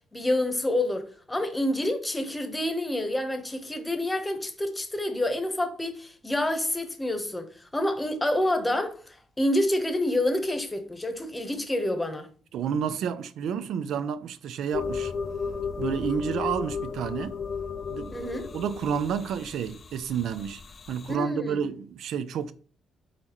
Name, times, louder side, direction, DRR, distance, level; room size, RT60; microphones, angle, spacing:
voice 1, 0.1-12.3 18.1-18.5 21.1-21.6, left 1 dB, 15° left, 0.9 m, -28 dB
voice 2, 12.5-15.1 15.8-17.4 17.9-18.2 18.5-20.6 20.9-22.5, right 7 dB, 75° right, 0.4 m, -30 dB
sound 1, 14.7-21.1, left 5 dB, 40° left, 0.3 m, -34 dB
4.1 x 4.0 x 2.9 m
cardioid pair, 90°, 0 cm